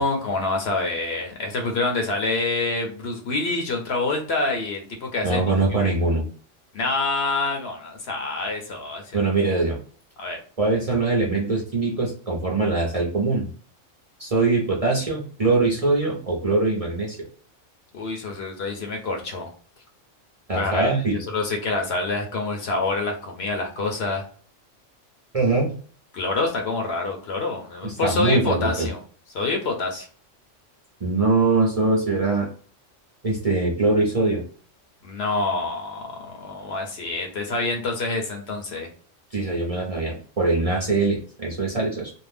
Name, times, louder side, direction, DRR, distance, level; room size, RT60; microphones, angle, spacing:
voice 1, 0.0-5.4 5.8-5.9 6.7-9.2 10.2-10.4 17.9-19.5 20.5-24.3 26.1-29.0 29.3-30.1 35.0-38.9, left 3 dB, 60° left, 2 dB, 0.8 m, -26 dB
voice 2, 5.2-6.2 9.1-9.8 10.6-13.5 14.2-17.2 20.5-21.2 25.3-25.7 27.8-28.9 31.0-32.5 33.2-34.4 39.3-42.1, right 3 dB, 35° right, -3 dB, 0.7 m, -22 dB
2.6 x 2.1 x 3.3 m, 0.43 s
omnidirectional pair, 1.3 m